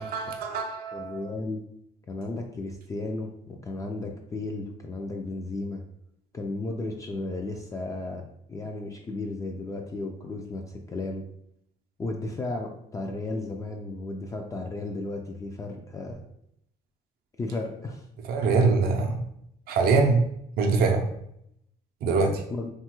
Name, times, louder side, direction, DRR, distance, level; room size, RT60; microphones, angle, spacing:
voice 1, 0.0-1.3 18.3-19.2 19.7-20.3 20.6-21.0 22.0-22.4, right 4 dB, 65° right, 3 dB, 0.5 m, -23 dB
voice 2, 0.9-1.6 2.1-5.8 6.3-11.2 12.0-16.2 17.4-18.0 22.5-22.7, left 2 dB, 20° left, 1 dB, 0.3 m, -34 dB
3.0 x 2.3 x 2.9 m, 0.74 s
cardioid pair, 110°, 17 cm